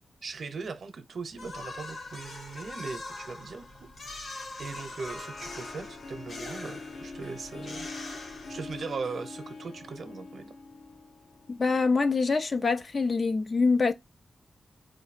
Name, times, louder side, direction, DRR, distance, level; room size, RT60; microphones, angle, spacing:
voice 1, 0.2-4.3 4.6-7.9 8.5-10.5, right 4 dB, 60° right, 0.7 m, -39 dB
sound 1, 1.4-9.0, left 2 dB, 60° left, 1.4 m, -43 dB
Harp, 4.7-11.8, left 3 dB, 80° left, 0.9 m, -44 dB
voice 2, 11.5-13.9, left 4 dB, 40° left, 0.4 m, -25 dB
4.9 x 2.6 x 4.1 m
wide cardioid pair, 160°, 0 cm